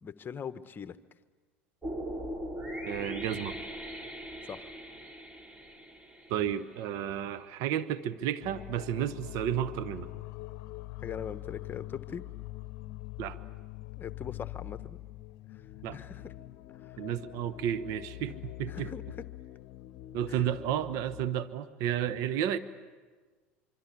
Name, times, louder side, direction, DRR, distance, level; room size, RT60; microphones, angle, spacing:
voice 1, 0.0-1.0 4.4-4.7 11.0-12.2 14.0-15.0 15.5-15.6 15.9-16.3 16.8-17.0 18.7-19.3 20.3-20.4, left 7 dB, 30° left, 13 dB, 1.1 m, -41 dB
sound 1, 1.8-7.0, equal, 15° right, 2.9 m, -40 dB
voice 2, 2.8-3.6 6.3-10.1 13.2-13.4 15.8-16.0 17.0-18.9 20.1-22.6, right 10 dB, 55° right, 17 dB, 1.0 m, -32 dB
sound 2, 8.4-21.3, left 17 dB, 60° left, 0.9 m, -44 dB
25.5 x 24.5 x 8.4 m, 1.4 s
hypercardioid pair, 85°, 7 cm